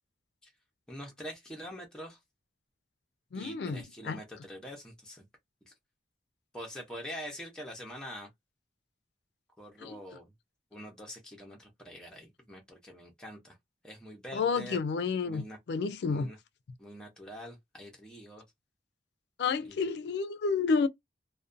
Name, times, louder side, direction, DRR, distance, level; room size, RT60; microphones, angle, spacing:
voice 1, 0.9-2.2 3.3-5.2 5.7-5.8 6.5-8.3 9.6-10.3 10.7-13.6 13.8-14.8 15.3-15.6 16.1-16.4 16.8-18.4 19.7-19.9, equal, 5° left, 0.6 m, -45 dB
voice 2, 3.3-4.2 9.8-10.0 14.3-16.3 19.4-20.9, left 5 dB, 70° left, 0.3 m, -30 dB
2.5 x 2.1 x 2.5 m
head